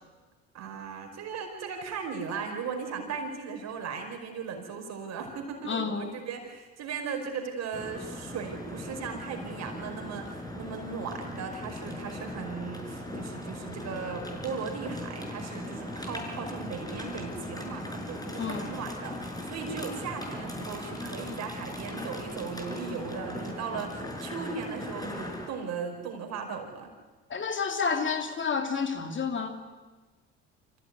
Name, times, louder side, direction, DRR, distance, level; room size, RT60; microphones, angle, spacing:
voice 1, 0.5-26.9, right 5 dB, 60° right, 4 dB, 5.0 m, -37 dB
voice 2, 5.6-6.1 18.4-18.7 27.3-29.6, left 5 dB, 40° left, 6 dB, 2.6 m, -30 dB
sound 1, 7.7-25.5, left 1 dB, 10° left, 5.5 m, -39 dB
24.5 x 15.5 x 9.6 m, 1.3 s
hypercardioid pair, 65°, 31 cm